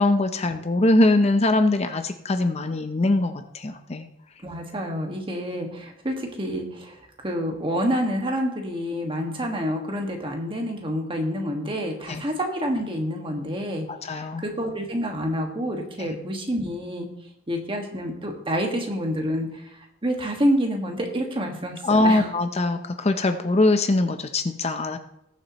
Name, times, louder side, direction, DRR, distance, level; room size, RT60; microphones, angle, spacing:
voice 1, 0.0-4.1 12.1-12.2 14.0-14.4 16.0-16.2 21.8-25.0, left 2 dB, 35° left, 8 dB, 0.6 m, -22 dB
voice 2, 4.4-7.0 7.2-13.9 14.2-17.1 17.5-19.5 20.0-22.3, equal, 25° right, 2 dB, 1.7 m, -28 dB
19.5 x 7.3 x 3.0 m, 0.81 s
head